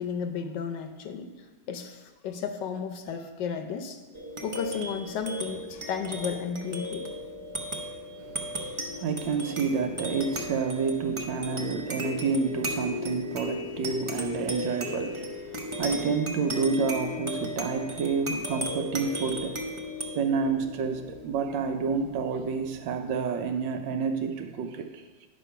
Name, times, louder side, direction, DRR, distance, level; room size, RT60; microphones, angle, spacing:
voice 1, 0.0-1.3 1.7-4.0 4.4-7.1, left 6 dB, 70° left, 1.3 m, -33 dB
sound 1, 4.1-23.0, left 1 dB, 45° right, 0.3 m, -36 dB
voice 2, 8.2-19.7 20.1-25.0, right 5 dB, 75° right, 1.3 m, -29 dB
9.8 x 5.2 x 5.6 m
omnidirectional pair, 2.2 m